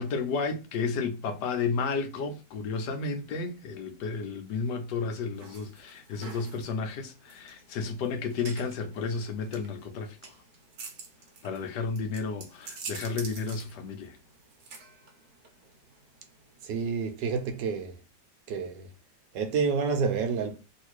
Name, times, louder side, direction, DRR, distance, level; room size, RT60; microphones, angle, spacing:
voice 1, 0.0-10.4 11.4-14.2, left 4 dB, 80° left, 1.2 m, -32 dB
sound 1, 5.4-16.7, right 4 dB, 65° right, 1.3 m, -47 dB
voice 2, 16.6-18.0 18.5-18.9 19.3-20.6, right 5 dB, 85° right, 1.4 m, -29 dB
3.2 x 2.8 x 2.9 m
omnidirectional pair, 1.8 m